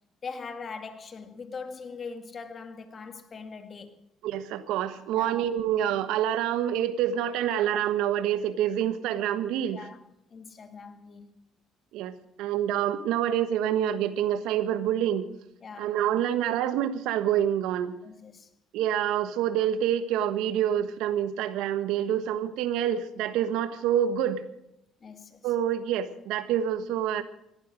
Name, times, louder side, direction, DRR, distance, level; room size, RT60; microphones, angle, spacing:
voice 1, 0.2-4.0 5.1-5.4 9.7-10.0 10.3-11.3 15.6-16.0 18.0-18.5 22.1-22.2 25.0-25.5, left 5 dB, 40° left, 2.2 m, -41 dB
voice 2, 4.2-9.8 11.9-15.3 15.8-17.9 18.7-24.4 25.4-27.2, right 10 dB, 80° right, 1.4 m, -27 dB
18.0 x 11.5 x 6.3 m
supercardioid pair, 75°, 0 cm